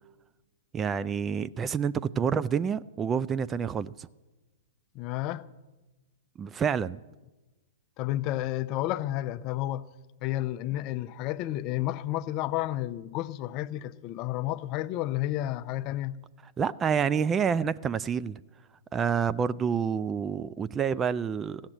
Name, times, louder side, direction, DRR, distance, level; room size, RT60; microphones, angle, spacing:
voice 1, 0.7-4.1 6.4-7.0 16.6-18.4 18.9-21.6, right 7 dB, 20° right, 0.3 m, -28 dB
voice 2, 4.9-5.5 8.0-9.9 10.2-16.2, left 14 dB, 40° left, 0.5 m, -31 dB
15.5 x 7.3 x 9.0 m
hypercardioid pair, 120°, 0 cm